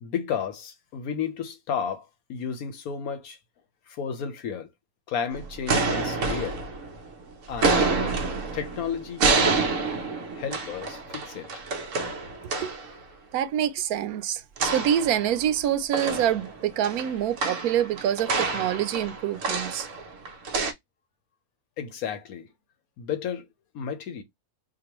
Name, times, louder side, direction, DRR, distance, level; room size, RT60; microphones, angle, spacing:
voice 1, 0.0-3.4 3.9-4.7 5.1-6.6 7.5-7.9 8.5-9.7 10.3-11.5 21.8-22.5 23.0-23.5 23.7-24.2, left 7 dB, 85° left, 1.3 m, -32 dB
sound 1, 5.3-7.1 7.5-12.9 14.6-15.6 15.9-20.7, right 4 dB, 65° right, 1.1 m, -28 dB
voice 2, 13.3-19.9, right 10 dB, 90° right, 1.1 m, -26 dB
5.1 x 2.3 x 3.0 m
omnidirectional pair, 1.5 m